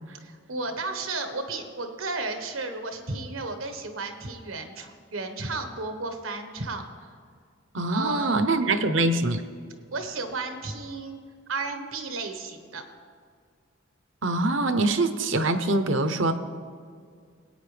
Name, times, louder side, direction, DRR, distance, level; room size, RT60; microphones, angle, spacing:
voice 1, 0.2-6.8 7.9-8.5 9.9-11.2 11.5-12.8, right 3 dB, 85° right, 6 dB, 1.3 m, -33 dB
voice 2, 7.7-9.4 14.2-16.3, right 2 dB, 70° right, 9 dB, 0.8 m, -24 dB
20.0 x 9.2 x 3.4 m, 2.1 s
head